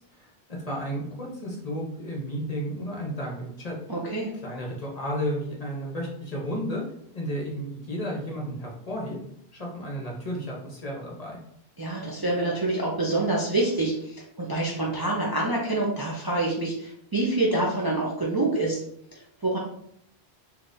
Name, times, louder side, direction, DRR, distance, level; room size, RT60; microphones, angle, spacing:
voice 1, 0.1-3.8 4.4-6.8 7.1-9.2 9.5-11.4, equal, 40° left, -2 dB, 0.9 m, -33 dB
voice 2, 3.9-4.3 11.8-18.8 19.1-19.6, right 2 dB, 30° right, -4 dB, 0.5 m, -26 dB
3.8 x 2.9 x 2.5 m, 0.71 s
omnidirectional pair, 1.1 m